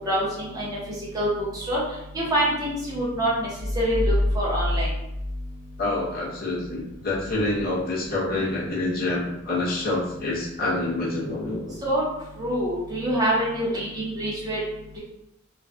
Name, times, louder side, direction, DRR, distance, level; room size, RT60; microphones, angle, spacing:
voice 1, 0.1-0.8 1.1-1.8 2.1-3.5 3.7-4.9 11.8-12.0 12.4-14.6, right 1 dB, 20° right, -6 dB, 0.7 m, -25 dB
sound 1, 3.6-6.5, left 1 dB, 60° right, 1.1 m, -27 dB
voice 2, 5.8-11.7, left 2 dB, 50° left, -5 dB, 0.6 m, -27 dB
2.4 x 2.1 x 2.4 m, 0.83 s
head